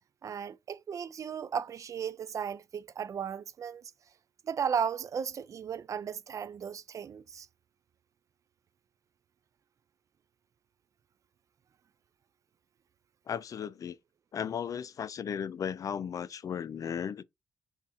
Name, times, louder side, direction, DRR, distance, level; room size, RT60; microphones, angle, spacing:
voice 1, 0.2-3.9 4.5-7.5, right 7 dB, 45° right, 0.3 m, -35 dB
voice 2, 13.3-14.0 14.3-17.2, left 8 dB, 50° left, 0.4 m, -35 dB
3.6 x 2.5 x 4.1 m
cardioid pair, 100°, 8 cm